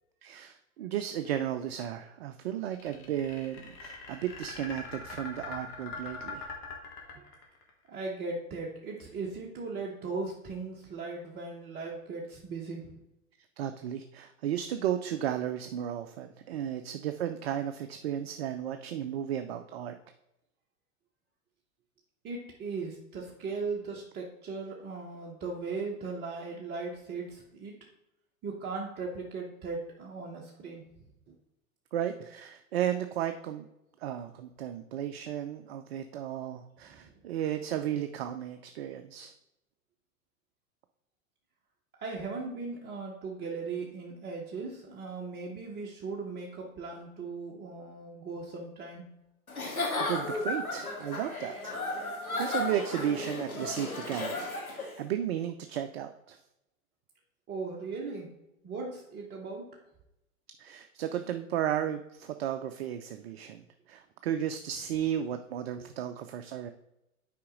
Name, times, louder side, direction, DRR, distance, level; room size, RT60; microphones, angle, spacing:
voice 1, 0.2-6.5 13.6-20.0 31.9-33.7 34.0-39.3 49.6-54.4 54.7-56.4 60.6-66.7, right 10 dB, 45° right, 8 dB, 0.6 m, -34 dB
sound 1, 2.7-7.7, left 4 dB, 35° left, 2.0 m, -42 dB
voice 2, 7.9-13.0 16.5-16.6 22.2-27.8 28.4-30.8 31.3-31.4 36.9-37.1 42.0-49.1 57.5-58.3 58.6-59.8 65.8-65.9, right 4 dB, 25° right, -2 dB, 1.0 m, -38 dB
Giggle / Chuckle chortle, 49.5-55.0, left 2 dB, 85° left, 1.8 m, -34 dB
8.4 x 5.1 x 3.8 m, 0.88 s
figure-of-eight pair, 95°, 42 cm